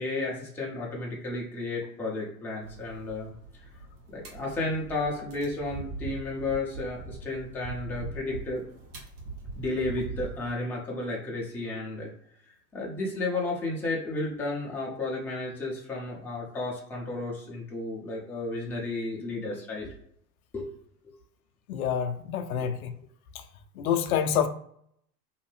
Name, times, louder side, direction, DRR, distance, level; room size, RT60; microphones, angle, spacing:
voice 1, 0.0-3.3 4.1-8.6 9.6-12.1 12.4-19.9 20.5-20.8 22.6-22.7, left 2 dB, 5° left, -3 dB, 0.4 m, -33 dB
sound 1, 2.6-10.5, right 3 dB, 70° right, 1.2 m, -41 dB
voice 2, 21.7-22.9 23.8-24.5, left 8 dB, 65° left, 8 dB, 0.5 m, -27 dB
2.7 x 2.1 x 3.2 m, 0.67 s
hypercardioid pair, 95°, 47 cm